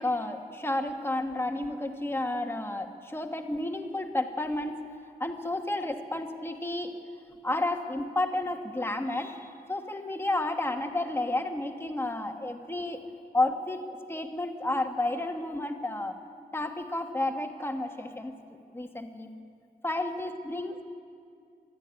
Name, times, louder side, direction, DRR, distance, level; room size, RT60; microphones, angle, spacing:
voice 1, 0.0-4.8 5.2-6.9 7.4-13.1 13.3-16.2 16.5-18.3 18.7-19.3 19.8-20.8, left 2 dB, 15° left, 4 dB, 1.4 m, -31 dB
24.5 x 13.0 x 9.8 m, 2.3 s
wide cardioid pair, 170°, 17 cm